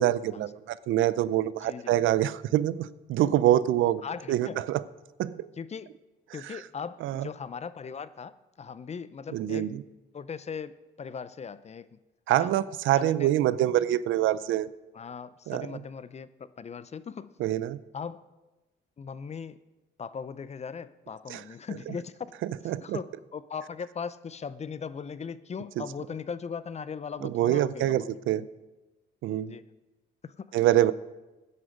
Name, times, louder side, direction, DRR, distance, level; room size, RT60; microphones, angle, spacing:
voice 1, 0.0-4.0 4.3-4.8 5.2-5.5 6.5-6.6 7.0-7.3 9.3-9.8 12.3-14.7 15.5-15.8 17.4-17.8 21.3-21.4 21.9-22.0 22.6-23.0 25.8-25.9 27.2-28.5 29.2-29.5 30.5-30.9, right 13 dB, 80° right, 17 dB, 0.5 m, -25 dB
voice 2, 1.6-1.9 4.0-4.6 5.6-5.9 6.3-8.3 8.6-9.8 10.1-10.7 11.0-12.0 12.3-12.5 13.0-13.3 14.9-17.3 17.9-18.2 19.0-19.6 20.0-22.3 22.6-28.1 29.5-29.6 30.2-30.5, left 6 dB, 35° left, 16 dB, 0.6 m, -39 dB
13.0 x 9.8 x 5.1 m, 1.1 s
cardioid pair, 90°, 20 cm